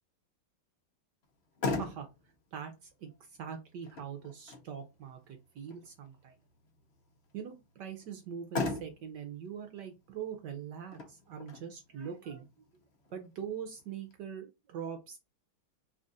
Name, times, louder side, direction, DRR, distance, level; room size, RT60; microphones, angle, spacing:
Motor vehicle (road), 1.2-14.2, left 3 dB, 65° left, 0.6 m, -42 dB
voice 1, 3.4-6.3 7.3-12.4 13.1-15.2, right 8 dB, 65° right, 5 dB, 1.2 m, -42 dB
4.1 x 2.5 x 3.9 m, 0.25 s
omnidirectional pair, 2.3 m